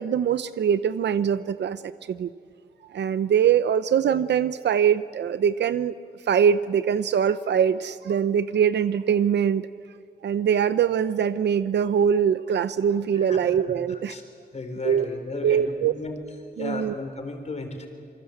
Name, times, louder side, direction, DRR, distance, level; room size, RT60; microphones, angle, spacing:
voice 1, 0.0-2.3 2.9-6.0 6.3-9.7 10.2-14.2 14.8-15.1 15.4-15.9 16.6-17.0, right 8 dB, 85° right, 13 dB, 0.7 m, -23 dB
voice 2, 13.9-14.2 14.5-16.2 16.6-17.9, left 3 dB, 40° left, 5 dB, 4.2 m, -34 dB
27.0 x 24.5 x 8.0 m, 2.3 s
wide cardioid pair, 130°, 18 cm